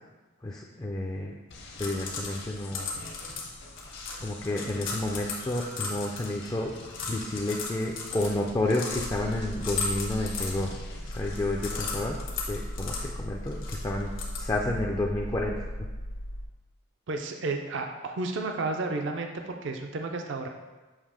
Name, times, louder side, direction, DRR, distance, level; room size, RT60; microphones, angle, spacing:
voice 1, 0.4-1.3 1.8-2.9 4.2-6.7 7.1-10.8 11.1-12.2 12.5-15.6, left 1 dB, 15° left, 0 dB, 0.3 m, -30 dB
sound 1, 1.5-14.8, left 4 dB, 70° left, 1.2 m, -38 dB
sound 2, 1.5-11.9, left 2 dB, 50° left, 0.7 m, -47 dB
sound 3, 8.9-16.5, equal, 90° left, 0.9 m, -37 dB
voice 2, 17.1-20.5, right 3 dB, 60° right, 4 dB, 0.4 m, -32 dB
7.4 x 2.9 x 4.9 m, 1.2 s
head